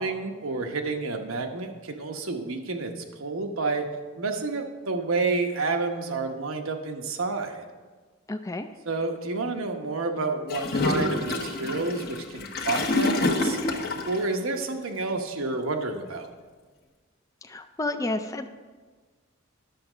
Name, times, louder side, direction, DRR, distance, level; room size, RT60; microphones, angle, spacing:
voice 1, 0.0-3.9 4.2-7.7 8.8-13.8 14.0-16.3, right 3 dB, 85° right, 5 dB, 1.0 m, -30 dB
voice 2, 8.3-8.7 17.4-18.5, left 2 dB, 15° left, 7 dB, 0.4 m, -31 dB
Gurgling / Toilet flush, 10.5-14.2, left 2 dB, 50° left, 1.0 m, -27 dB
10.5 x 7.2 x 5.0 m, 1.4 s
head